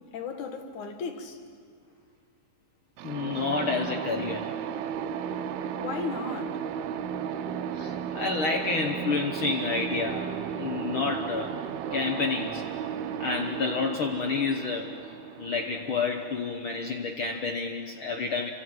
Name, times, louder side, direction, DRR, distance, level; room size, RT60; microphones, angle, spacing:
voice 1, 0.1-1.4 5.8-6.6, left 5 dB, 60° left, 3.1 m, -35 dB
voice 2, 3.0-4.4 7.7-10.3 10.6-11.5 11.9-12.7 13.2-14.9 15.4-18.5, left 4 dB, 80° left, 1.1 m, -29 dB
sound 1, 3.0-16.6, right 8 dB, 85° right, 2.8 m, -34 dB
29.5 x 26.0 x 7.9 m
omnidirectional pair, 4.3 m